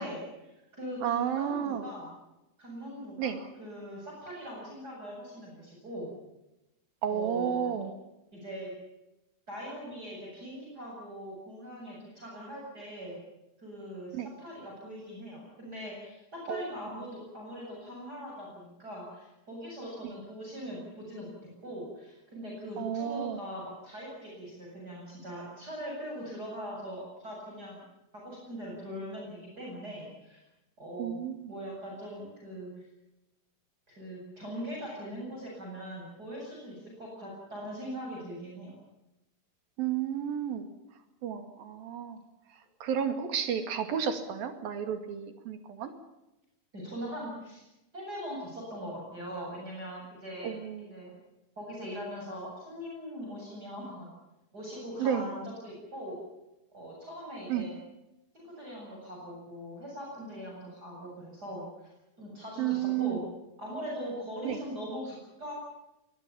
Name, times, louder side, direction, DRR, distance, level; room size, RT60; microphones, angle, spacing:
voice 1, 0.0-2.1 2.6-6.1 7.1-7.7 8.3-8.7 9.5-13.2 13.6-21.3 21.6-27.8 28.1-30.4 30.8-31.2 31.5-32.7 33.9-38.7 46.7-47.6 47.9-51.2 51.6-54.1 54.5-56.2 56.7-57.7 58.3-61.9 62.2-63.3 63.6-65.5, equal, 25° right, -3 dB, 8.4 m, -41 dB
voice 2, 1.0-1.9 3.2-3.4 7.0-7.9 14.1-14.3 16.5-16.6 22.8-23.4 31.0-31.5 39.8-40.7 41.2-42.2 42.8-45.9 50.4-50.9 55.0-55.3 57.5-57.7 62.6-63.2 64.4-64.6, right 9 dB, 80° right, 8 dB, 4.1 m, -32 dB
24.0 x 21.5 x 7.2 m, 0.93 s
omnidirectional pair, 4.1 m